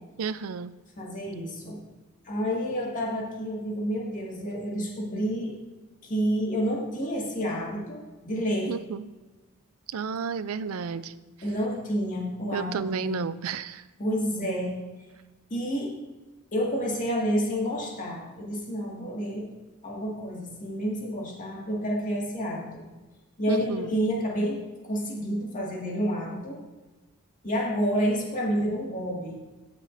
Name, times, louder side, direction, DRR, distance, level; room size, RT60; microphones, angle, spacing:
voice 1, 0.2-0.7 8.7-9.1 9.9-11.1 12.5-13.8 23.5-24.0, right 5 dB, 75° right, 15 dB, 0.4 m, -32 dB
voice 2, 1.0-1.8 2.2-5.6 6.0-8.7 11.4-13.2 14.0-14.8 15.5-16.0 16.5-19.5 19.8-22.8 23.4-26.6 27.4-29.4, equal, 40° left, -2 dB, 2.0 m, -29 dB
15.5 x 6.3 x 2.6 m, 1.2 s
head